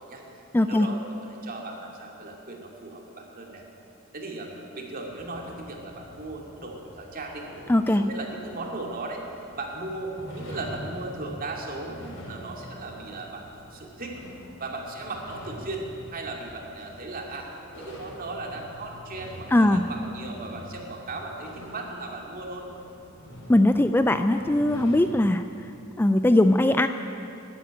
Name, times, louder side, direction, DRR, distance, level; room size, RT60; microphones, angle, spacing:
voice 1, 0.0-3.6 4.1-7.5 7.9-9.2 9.6-13.4 13.7-14.2 14.6-15.9 16.1-17.5 17.8-22.7, right 2 dB, 45° right, 0 dB, 2.4 m, -37 dB
voice 2, 0.5-0.9 7.7-8.0 19.5-19.8 23.5-25.4 26.0-26.9, left 1 dB, 10° left, 9 dB, 0.3 m, -20 dB
sound 1, 5.1-25.0, equal, 90° left, 4.4 m, -45 dB
12.5 x 11.0 x 9.8 m, 2.7 s
head